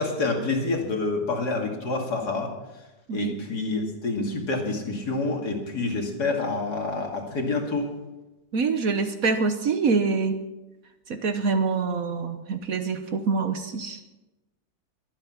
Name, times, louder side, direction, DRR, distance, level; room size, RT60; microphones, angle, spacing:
voice 1, 0.0-2.5 3.1-7.9, left 3 dB, 65° left, 2 dB, 2.9 m, -27 dB
voice 2, 8.5-10.4 11.1-14.0, right 4 dB, 55° right, 8 dB, 1.3 m, -25 dB
22.0 x 8.9 x 5.8 m, 1.1 s
omnidirectional pair, 1.9 m